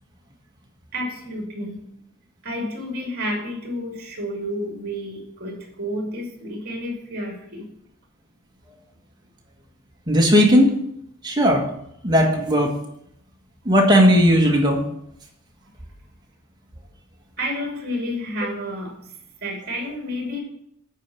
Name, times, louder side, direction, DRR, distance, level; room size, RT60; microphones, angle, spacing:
voice 1, 0.9-1.8 2.4-7.7 17.4-19.1 19.4-20.4, equal, 50° right, 0 dB, 2.5 m, -30 dB
voice 2, 10.1-10.7 11.2-11.6 12.0-12.7 13.6-14.8, equal, 20° right, 0 dB, 1.6 m, -16 dB
9.0 x 4.7 x 7.0 m, 0.73 s
head